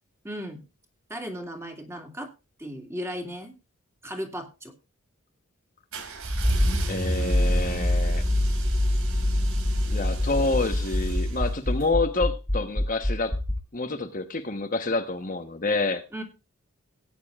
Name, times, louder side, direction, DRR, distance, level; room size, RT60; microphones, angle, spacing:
voice 1, 0.2-0.6 1.1-2.3 2.6-3.5 4.0-4.7 16.1-16.2, equal, 10° right, 3 dB, 2.6 m, -36 dB
sound 1, 5.9-11.9, right 2 dB, 70° right, 2.8 m, -35 dB
Accelerating revving vroom, 6.3-13.6, left 1 dB, 10° left, 1.5 m, -25 dB
voice 2, 6.9-8.2 9.9-13.3 13.7-16.0, left 3 dB, 35° left, 6 dB, 1.1 m, -28 dB
18.5 x 9.4 x 2.4 m, 0.27 s
head